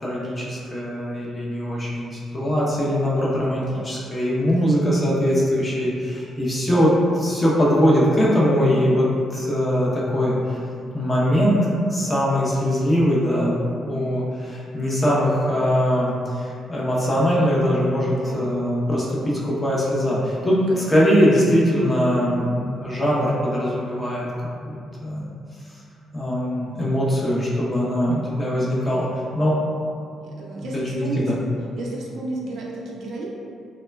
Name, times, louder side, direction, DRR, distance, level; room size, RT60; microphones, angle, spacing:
voice 1, 0.0-9.1 9.3-10.3 10.9-24.3 24.6-25.3 26.1-29.1 29.3-29.6 30.7-31.3, equal, 20° left, -6 dB, 0.7 m, -21 dB
voice 2, 4.5-4.9 14.8-15.0 18.2-18.5 30.2-31.2 31.8-33.3, right 2 dB, 70° right, -3 dB, 0.4 m, -33 dB
3.0 x 2.2 x 2.2 m, 2.4 s
cardioid pair, 90°, 0 cm